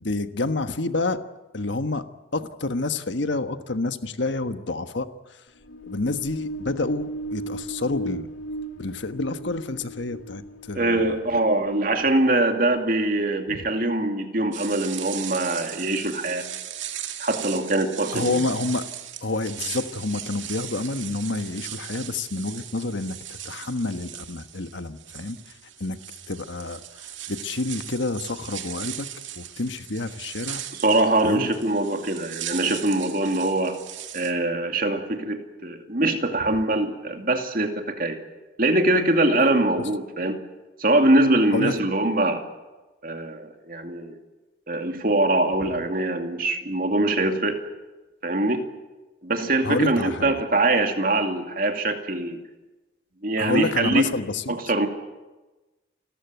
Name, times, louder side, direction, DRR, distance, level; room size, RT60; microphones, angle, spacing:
voice 1, 0.0-1.2 1.5-2.0 2.3-5.4 5.8-8.3 8.8-11.4 13.5-13.6 18.1-18.8 19.2-25.4 25.8-26.0 26.3-29.1 29.4-30.6 31.2-31.5 41.5-41.7 49.6-50.3 53.4-54.5, left 2 dB, 70° left, 9 dB, 1.3 m, -28 dB
sound 1, 5.5-13.2, right 1 dB, 90° left, 2.0 m, -37 dB
voice 2, 10.7-16.4 17.2-18.4 30.7-33.7 34.1-38.2 38.6-40.4 40.8-42.4 43.0-44.2 44.7-47.6 48.2-48.7 49.2-52.4 53.2-54.0 54.5-54.9, right 2 dB, 45° right, 5 dB, 2.5 m, -23 dB
sound 2, 14.5-34.3, right 11 dB, 75° right, 2.1 m, -38 dB
29.0 x 14.5 x 9.2 m, 1.2 s
head